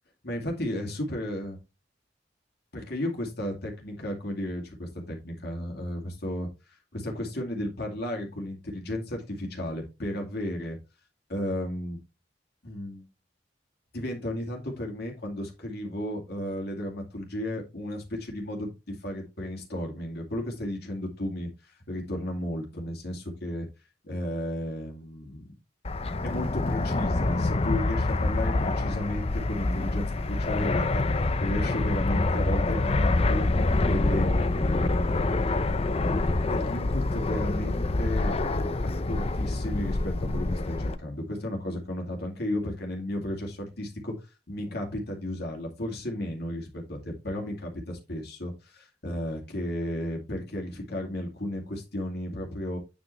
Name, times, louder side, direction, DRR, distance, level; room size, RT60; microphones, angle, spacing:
voice 1, 0.2-1.6 2.7-6.5 6.9-10.8 11.3-12.0 12.6-13.0 13.9-21.5 21.9-23.7 24.0-25.4 26.2-33.4 33.8-35.2 36.3-38.3 38.8-44.1 44.5-52.8, left 1 dB, 60° left, 1 dB, 2.4 m, -34 dB
Fixed-wing aircraft airplane, 25.8-41.0, left 2 dB, 35° left, 0.6 m, -26 dB
9.0 x 5.2 x 3.3 m, 0.27 s
head